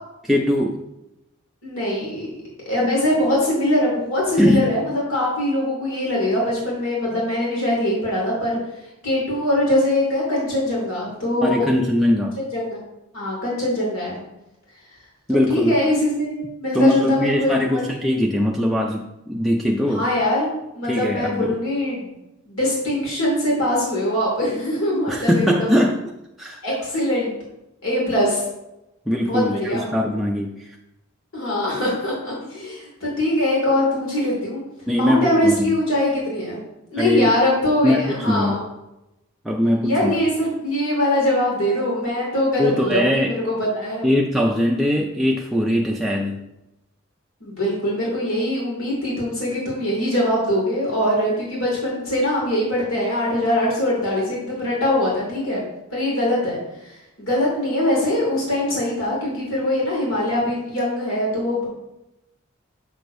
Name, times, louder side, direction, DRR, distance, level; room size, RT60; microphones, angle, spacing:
voice 1, 0.2-0.8 4.4-4.7 11.4-12.3 15.3-15.8 16.7-20.0 20.9-21.6 25.1-26.0 26.4-26.6 29.1-30.7 34.9-35.7 37.0-37.3 37.8-38.6 39.4-40.2 42.6-43.3 44.0-46.4, left 1 dB, ahead, -2 dB, 0.4 m, -21 dB
voice 2, 1.6-2.3 2.7-8.6 9.0-11.7 12.5-12.8 13.1-14.2 15.3-17.8 19.9-20.5 20.7-22.1 22.5-25.8 26.6-27.4 27.8-28.4 29.3-29.9 31.3-34.6 34.9-36.6 36.9-38.6 39.8-44.1 47.4-55.6 55.9-56.6 56.8-61.6, left 1 dB, 70° left, -4 dB, 2.4 m, -22 dB
6.8 x 6.4 x 2.6 m, 0.91 s
head